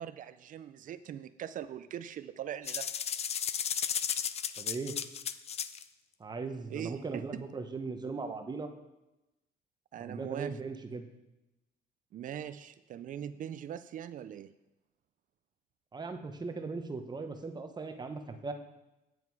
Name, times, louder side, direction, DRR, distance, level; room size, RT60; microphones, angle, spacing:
voice 1, 0.0-2.9 6.7-7.4 9.9-10.6 12.1-14.5, right 10 dB, 50° right, 13 dB, 0.5 m, -41 dB
Small Bamboo Maraca, 2.7-5.8, left 8 dB, 40° left, 0.5 m, -34 dB
voice 2, 4.6-5.0 6.2-8.7 10.0-11.1 15.9-18.5, right 4 dB, 25° right, 6 dB, 1.0 m, -38 dB
9.3 x 8.0 x 4.7 m, 0.97 s
cardioid pair, 110°, 17 cm